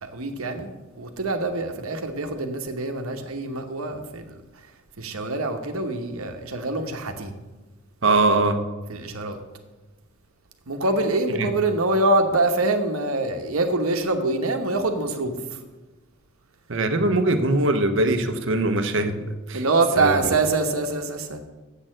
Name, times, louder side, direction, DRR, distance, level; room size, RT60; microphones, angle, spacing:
voice 1, 0.0-4.3 5.0-7.3 8.9-9.4 10.7-15.4 19.5-21.4, right 2 dB, 85° right, 6 dB, 1.1 m, -25 dB
voice 2, 8.0-8.6 11.4-11.5 16.7-19.2 19.5-19.6 20.0-20.2, right 2 dB, 60° right, 8 dB, 0.8 m, -21 dB
7.5 x 6.5 x 7.5 m, 1.2 s
head